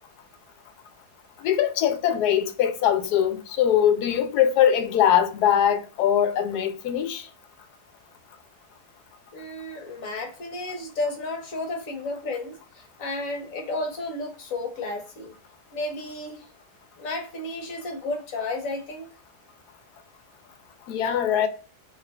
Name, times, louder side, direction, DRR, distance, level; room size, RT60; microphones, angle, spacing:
voice 1, 1.4-7.3 20.9-21.5, left 9 dB, 80° left, 1.2 m, -22 dB
voice 2, 9.3-15.3 15.7-16.4 17.0-19.1, left 2 dB, 60° left, 1.3 m, -32 dB
3.2 x 3.1 x 3.4 m
omnidirectional pair, 1.7 m